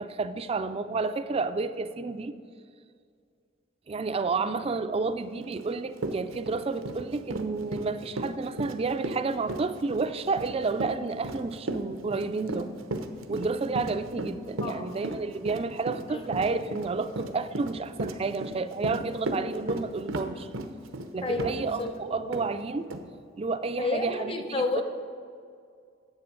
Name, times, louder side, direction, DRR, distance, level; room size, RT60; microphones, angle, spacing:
voice 1, 0.0-2.4 3.9-12.7 13.3-20.5 21.1-22.9 23.4-24.8, right 4 dB, 30° right, 12 dB, 0.3 m, -30 dB
Run, 5.6-5.7 6.0-21.9 22.3-22.5 22.9-23.0, right 2 dB, 85° right, 0.8 m, -35 dB
voice 2, 14.6-14.9 16.1-16.2 21.2-21.9 23.8-24.8, left 2 dB, 30° left, 6 dB, 0.8 m, -30 dB
10.0 x 7.6 x 5.3 m, 2.2 s
head